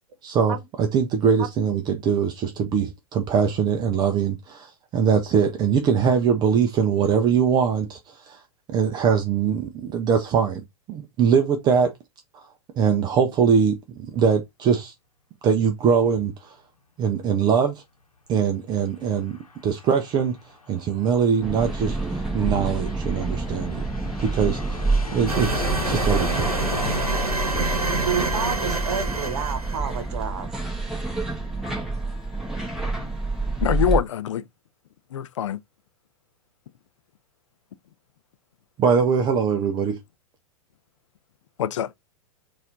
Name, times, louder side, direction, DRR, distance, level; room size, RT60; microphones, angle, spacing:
voice 1, 0.2-8.4 8.7-10.6 10.9-11.9 12.3-12.5 12.8-14.9 15.4-16.6 17.0-17.8 18.3-19.4 19.6-20.4 20.7-23.8 24.2-26.6 38.8-40.0, right 6 dB, 25° right, 0.5 m, -22 dB
Aircraft, 18.6-29.8, left 4 dB, 80° left, 0.9 m, -40 dB
sound 1, 21.4-34.0, right 3 dB, ahead, 1.2 m, -28 dB
sound 2, 25.3-30.0, right 2 dB, 90° right, 0.9 m, -27 dB
voice 2, 28.0-30.5, right 7 dB, 50° right, 1.1 m, -29 dB
voice 3, 33.6-34.4 35.1-35.6 41.6-42.0, left 10 dB, 55° left, 0.4 m, -24 dB
4.1 x 2.6 x 3.8 m
figure-of-eight pair, 100°, 18 cm